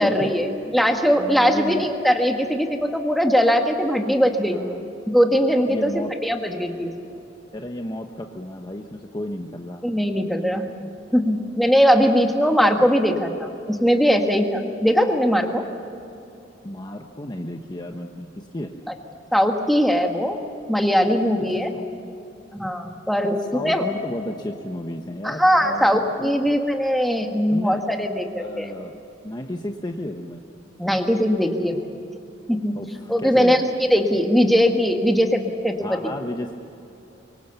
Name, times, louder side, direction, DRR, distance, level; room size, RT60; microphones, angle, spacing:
voice 1, 0.0-4.6 5.1-6.9 9.8-10.7 11.1-15.6 19.3-20.4 20.7-21.7 22.5-23.9 25.2-28.7 30.8-31.8 32.5-32.7 33.1-36.0, equal, ahead, 4 dB, 1.6 m, -20 dB
voice 2, 1.2-1.9 4.5-4.9 5.7-6.1 7.5-9.8 16.6-18.7 21.7-21.9 23.2-26.3 27.5-27.8 28.3-30.4 32.7-33.6 35.8-36.5, left 1 dB, 20° left, 4 dB, 1.0 m, -33 dB
24.5 x 23.5 x 7.0 m, 2.8 s
head